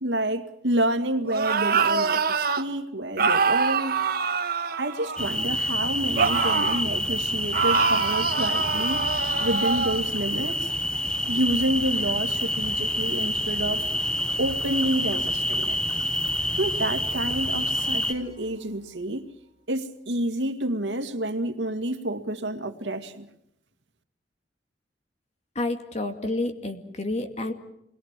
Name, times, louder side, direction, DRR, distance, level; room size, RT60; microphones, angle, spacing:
voice 1, 0.0-4.1 4.7-9.1 9.4-10.7 11.3-13.8 14.4-15.8 16.6-19.3 19.7-23.3, right 1 dB, 85° right, 2.1 m, -29 dB
sound 1, 1.3-2.6 3.2-5.4 6.2-6.9 7.5-10.0, right 5 dB, 55° right, 1.6 m, -24 dB
sound 2, 5.2-18.1, left 1 dB, 5° left, 0.9 m, -27 dB
sound 3, 8.9-19.5, left 1 dB, 55° left, 5.0 m, -46 dB
voice 2, 25.6-27.5, left 2 dB, 40° left, 2.4 m, -29 dB
27.5 x 22.0 x 7.6 m
head